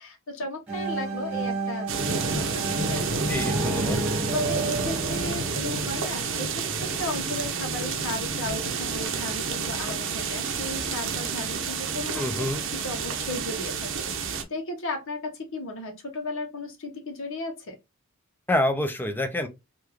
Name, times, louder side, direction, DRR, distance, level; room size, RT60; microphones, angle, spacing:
voice 1, 0.0-3.3 4.3-12.2 12.7-17.8, left 2 dB, 65° left, 0.9 m, -35 dB
sound 1, 0.7-6.4, right 4 dB, 10° right, 1.4 m, -32 dB
sound 2, 1.9-14.4, right 4 dB, 60° right, 0.7 m, -29 dB
voice 2, 3.3-4.0 12.1-12.6 18.5-19.5, left 1 dB, 10° left, 0.5 m, -27 dB
3.5 x 2.4 x 3.0 m
head